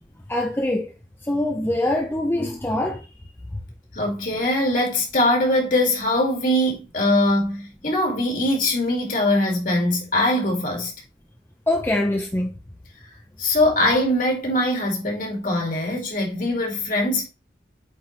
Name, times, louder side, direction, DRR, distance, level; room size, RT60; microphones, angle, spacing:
voice 1, 0.3-0.9 1.3-3.1 11.7-12.5, left 1 dB, 15° left, 0.7 m, -23 dB
voice 2, 3.9-10.9 13.4-17.2, left 1 dB, 50° left, 2.4 m, -22 dB
8.1 x 4.3 x 3.2 m
head